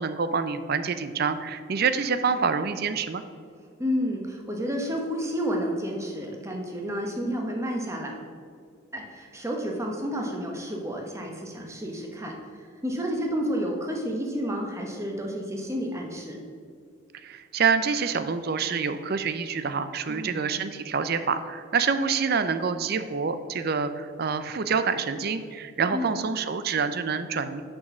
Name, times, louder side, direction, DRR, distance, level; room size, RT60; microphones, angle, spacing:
voice 1, 0.0-3.2 17.1-27.6, right 5 dB, 45° right, 11 dB, 0.4 m, -27 dB
voice 2, 3.8-8.1 8.9-16.4 20.1-20.5 25.9-26.1, equal, 15° right, 1 dB, 1.0 m, -30 dB
6.3 x 6.1 x 6.0 m, 2.2 s
head